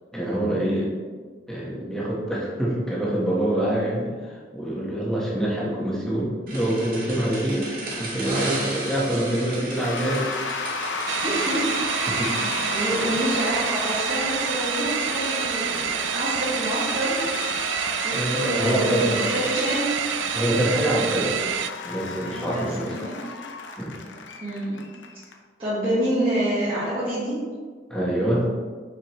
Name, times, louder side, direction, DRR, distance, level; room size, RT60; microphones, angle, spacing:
voice 1, 0.1-0.9 1.5-7.7 8.0-10.3 12.1-12.5 12.9-13.0 18.1-19.3 20.3-21.4 21.8-22.9 23.8-24.0 27.9-28.5, right 1 dB, 5° left, -6 dB, 1.4 m, -25 dB
sound 1, 6.5-12.9, right 1 dB, 50° right, 1.4 m, -34 dB
Cheering / Applause / Crowd, 9.7-25.3, left 4 dB, 85° left, 0.7 m, -33 dB
sound 2, 11.1-21.7, right 10 dB, 80° right, 0.3 m, -28 dB
voice 2, 11.2-11.7 12.3-17.2 18.0-20.0 22.2-23.2 24.4-24.8 25.6-27.5, right 1 dB, 30° right, -13 dB, 2.0 m, -27 dB
6.7 x 6.0 x 3.1 m, 1.6 s
head